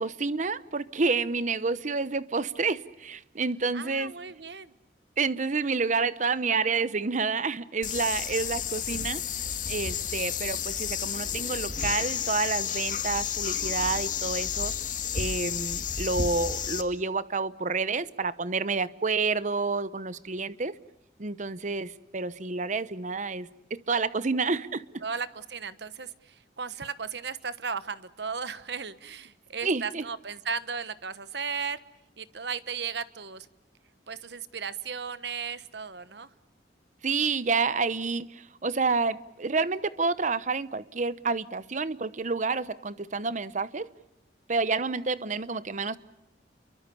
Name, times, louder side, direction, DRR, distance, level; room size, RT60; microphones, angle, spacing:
voice 1, 0.0-4.1 5.2-9.2 9.7-14.7 15.1-20.8 21.2-25.0 29.6-30.0 37.0-43.9 44.5-46.0, right 4 dB, 45° right, 16 dB, 0.9 m, -29 dB
voice 2, 3.7-4.7 25.0-31.8 32.2-33.5 34.1-36.3, right 6 dB, 65° right, 14 dB, 1.2 m, -35 dB
sound 1, 7.8-16.8, left 8 dB, 50° left, 1.8 m, -31 dB
30.0 x 23.5 x 7.0 m, 0.87 s
head